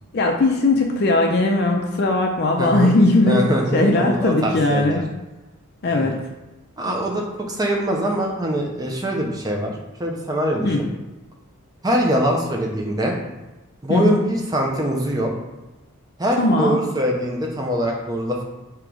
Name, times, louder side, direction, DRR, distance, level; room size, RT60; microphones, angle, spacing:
voice 1, 0.1-3.4 3.7-5.0 5.8-6.2 10.6-10.8 13.9-14.2 16.4-16.8, left 2 dB, 45° left, 1 dB, 0.4 m, -19 dB
voice 2, 2.6-2.9 3.3-5.0 5.9-6.1 6.8-9.7 10.0-10.9 11.8-13.2 13.8-15.3 16.2-18.4, equal, 15° right, 0 dB, 0.5 m, -23 dB
3.8 x 2.9 x 4.8 m, 1.1 s
head